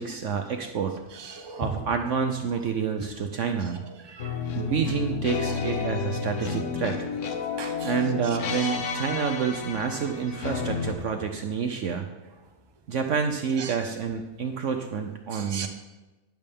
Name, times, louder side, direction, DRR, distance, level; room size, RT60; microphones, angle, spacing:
voice 1, 0.0-1.0 1.6-3.8 4.6-7.1 7.8-12.0 12.9-15.7, right 6 dB, 60° right, 0.9 m, -28 dB
voice 2, 1.2-1.7 4.1-4.7 7.6-7.9 8.6-8.7 13.6-13.7 15.3-15.7, right 5 dB, 20° right, 0.8 m, -37 dB
sound 1, 4.2-10.9, left 5 dB, 55° left, 1.2 m, -31 dB
12.0 x 10.5 x 3.6 m
omnidirectional pair, 1.6 m